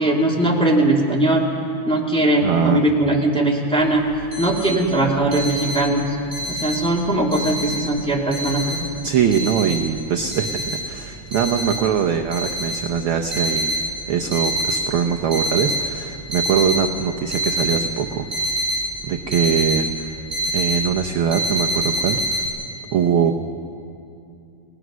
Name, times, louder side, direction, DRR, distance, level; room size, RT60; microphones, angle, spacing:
voice 1, 0.0-1.5 1.8-4.0 4.4-6.1 6.5-8.9, right 1 dB, ahead, -2 dB, 1.9 m, -20 dB
voice 2, 2.4-2.8 9.0-13.8 14.1-18.5 19.0-20.2 20.5-22.4 22.9-23.3, right 7 dB, 70° right, 5 dB, 1.3 m, -22 dB
sound 1, 3.8-3.9 4.1-4.7 5.1-6.9 7.3-8.0 8.3-10.0 10.3-10.8 11.3-11.9 12.3-13.9 14.2-14.8 15.2-15.9 16.2-16.8 17.3-19.8 20.1-20.9 21.3-22.5, right 1 dB, 20° right, 8.2 m, -25 dB
29.5 x 18.5 x 6.2 m, 2.5 s
omnidirectional pair, 3.3 m